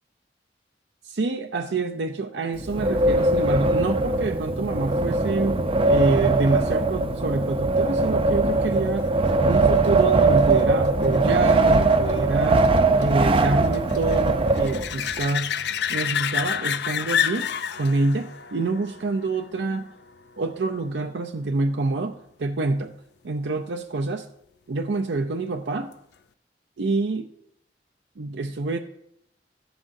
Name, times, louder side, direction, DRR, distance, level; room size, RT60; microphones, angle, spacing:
voice 1, 1.0-9.1 9.4-12.7 13.0-15.5 15.9-17.5 17.8-19.9 20.4-22.9 23.2-24.3 24.7-25.9 26.8-27.3 28.2-28.8, right 3 dB, 90° right, 5 dB, 0.6 m, -27 dB
Wind, 2.6-15.2, right 3 dB, 30° right, 0.6 m, -21 dB
sound 1, 9.0-20.3 25.9-26.0, left 9 dB, 65° left, 0.4 m, -31 dB
14.0 x 11.0 x 2.6 m, 0.76 s
head